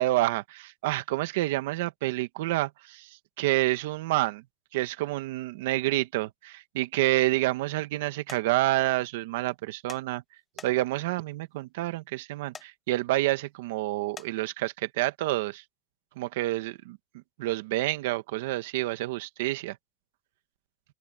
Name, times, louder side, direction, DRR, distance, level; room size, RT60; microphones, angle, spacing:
voice 1, 0.0-3.1 3.4-4.4 4.7-10.2 10.6-15.6 16.2-17.0 17.4-19.8, right 17 dB, 70° right, 1.6 m, -28 dB
sound 1, 8.3-8.4 9.9-10.0 10.6-11.0 12.5-12.7 14.2-14.3, left 5 dB, 15° left, 1.0 m, -43 dB
open air
supercardioid pair, 155°, 0 cm